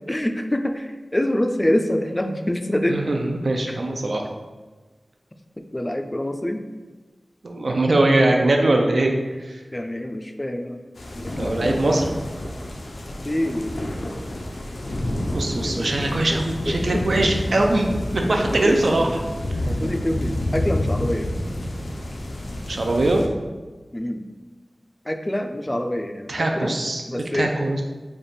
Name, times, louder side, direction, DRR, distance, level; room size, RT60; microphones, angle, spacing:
voice 1, 0.1-3.0 3.7-3.8 5.7-6.7 9.7-10.8 11.1-12.0 13.2-13.8 15.6-15.9 16.3-16.4 16.7-17.3 18.4-18.8 19.7-21.3 23.9-24.2 25.1-26.8 27.1-27.5, left 1 dB, 20° left, 6 dB, 0.3 m, -26 dB
voice 2, 2.9-4.3 7.4-9.1 9.4-9.6 11.4-12.2 15.3-19.2 22.7-23.3 26.3-27.0 27.3-27.8, right 2 dB, 75° right, 2 dB, 0.4 m, -21 dB
sound 1, 11.0-23.3, left 1 dB, 85° left, 0.4 m, -29 dB
3.3 x 2.4 x 4.1 m, 1.3 s
wide cardioid pair, 55°, 0 cm